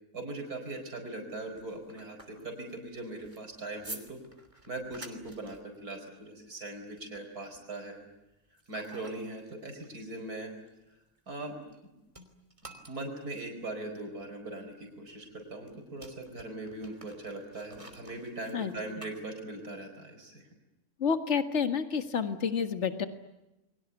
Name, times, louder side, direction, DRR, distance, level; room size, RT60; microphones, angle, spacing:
voice 1, 0.1-4.2 4.7-8.0 8.7-10.5 11.3-11.6 12.6-20.5, right 2 dB, 80° right, 4 dB, 5.1 m, -40 dB
sound 1, 1.3-11.8 12.1-19.8, right 1 dB, 20° right, 3.1 m, -52 dB
voice 2, 21.0-23.1, left 6 dB, 50° left, 8 dB, 2.0 m, -29 dB
29.5 x 23.0 x 8.2 m, 0.96 s
omnidirectional pair, 1.6 m